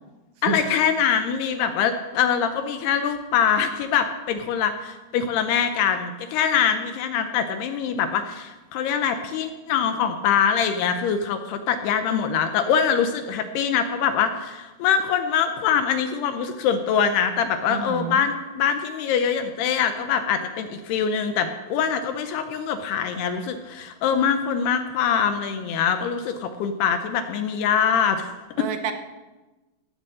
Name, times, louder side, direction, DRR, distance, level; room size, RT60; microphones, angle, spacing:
voice 1, 0.4-28.7, left 7 dB, 75° left, 8 dB, 2.8 m, -23 dB
voice 2, 17.7-18.2 28.6-28.9, right 8 dB, 75° right, 7 dB, 1.9 m, -28 dB
17.5 x 7.4 x 7.6 m, 1.1 s
omnidirectional pair, 4.9 m